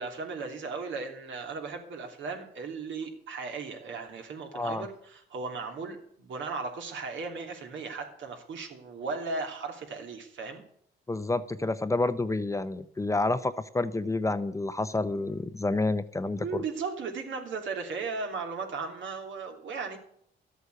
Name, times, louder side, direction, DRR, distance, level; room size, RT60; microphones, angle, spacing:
voice 1, 0.0-10.6 16.2-20.0, right 4 dB, 70° right, 3 dB, 2.9 m, -36 dB
voice 2, 4.5-4.9 11.1-16.6, left 2 dB, 15° left, 12 dB, 0.7 m, -29 dB
13.0 x 8.2 x 8.1 m, 0.68 s
cardioid pair, 90°, 20 cm